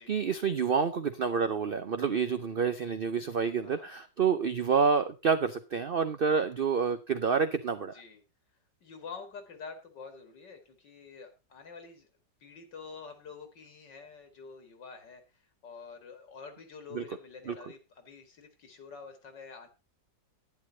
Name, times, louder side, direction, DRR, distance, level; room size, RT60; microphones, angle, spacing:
voice 1, 0.0-8.0 16.9-17.0 17.5-17.6, right 6 dB, 90° right, 10 dB, 0.5 m, -28 dB
voice 2, 8.8-12.1 12.4-15.2 15.6-19.7, left 5 dB, 80° left, 7 dB, 2.6 m, -47 dB
11.0 x 9.7 x 3.9 m, 0.27 s
omnidirectional pair, 1.9 m